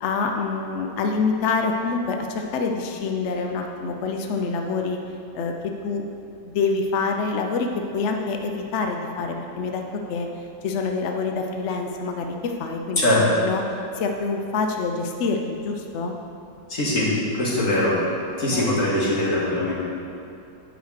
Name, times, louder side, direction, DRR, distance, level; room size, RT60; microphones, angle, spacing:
voice 1, 0.0-5.0 5.3-5.5 5.8-6.0 6.4-7.7 7.9-9.8 10.1-10.3 10.6-13.6 13.9-16.1 18.3-18.8, left 4 dB, 70° left, 3 dB, 0.6 m, -26 dB
voice 2, 13.0-13.4 16.7-18.0 18.4-19.8, left 1 dB, 45° left, -7 dB, 2.3 m, -22 dB
9.2 x 5.0 x 6.4 m, 2.6 s
omnidirectional pair, 2.0 m